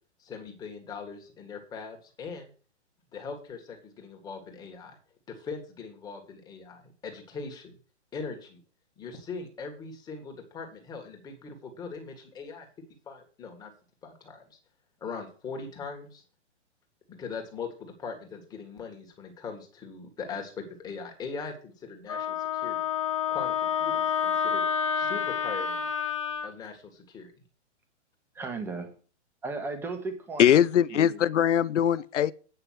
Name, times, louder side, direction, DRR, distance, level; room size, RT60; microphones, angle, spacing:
voice 1, 0.2-2.5 3.1-5.0 5.3-7.8 8.1-8.6 9.0-10.2 10.5-12.6 13.1-13.7 14.0-14.4 15.0-16.0 17.1-22.8 23.3-24.6 24.9-25.9 26.4-27.3, left 5 dB, 10° left, 2.0 m, -40 dB
Wind instrument woodwind instrument, 22.1-26.5, left 7 dB, 30° left, 0.4 m, -28 dB
voice 2, 28.3-28.8 29.4-31.2, right 3 dB, 5° right, 1.3 m, -36 dB
voice 3, 30.4-32.3, left 10 dB, 85° left, 0.7 m, -21 dB
9.3 x 5.6 x 7.6 m
hypercardioid pair, 160°, 35 cm